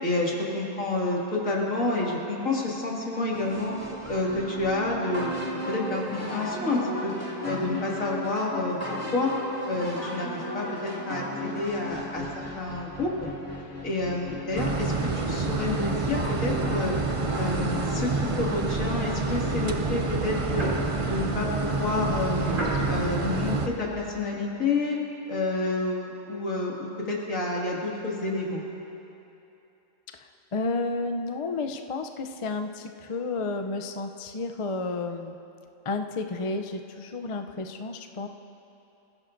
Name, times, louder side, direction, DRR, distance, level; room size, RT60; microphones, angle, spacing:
voice 1, 0.0-3.7 4.1-5.3 5.7-7.1 7.4-9.3 9.7-13.1 13.8-16.9 17.3-20.7 21.0-22.5 22.9-25.0 25.3-28.6, left 2 dB, 75° left, -4 dB, 2.7 m, -29 dB
sound 1, 3.3-18.4, equal, 10° left, 2.1 m, -36 dB
sound 2, 14.6-23.7, right 3 dB, 35° right, 0.6 m, -28 dB
sound 3, 19.4-24.2, right 1 dB, 70° right, 3.2 m, -36 dB
voice 2, 30.5-35.4 35.8-38.3, left 3 dB, 45° left, 5 dB, 0.4 m, -31 dB
26.5 x 15.0 x 2.6 m, 2.9 s
omnidirectional pair, 1.4 m